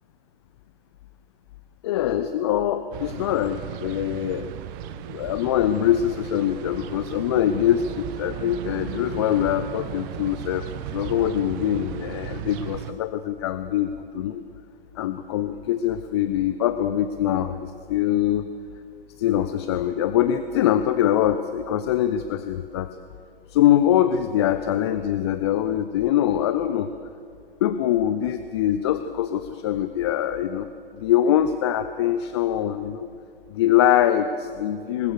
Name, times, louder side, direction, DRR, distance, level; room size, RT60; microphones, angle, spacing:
voice 1, 1.8-4.5 5.1-10.7 10.9-14.4 15.0-18.5 19.2-22.9 23.5-26.9 27.6-30.7 30.9-33.1 33.5-35.1, left 11 dB, 25° left, 11 dB, 0.6 m, -23 dB
sound 1, 2.9-12.9, right 11 dB, 20° right, 0.7 m, -36 dB
26.0 x 20.0 x 6.6 m, 2.4 s
figure-of-eight pair, 125°, 30 cm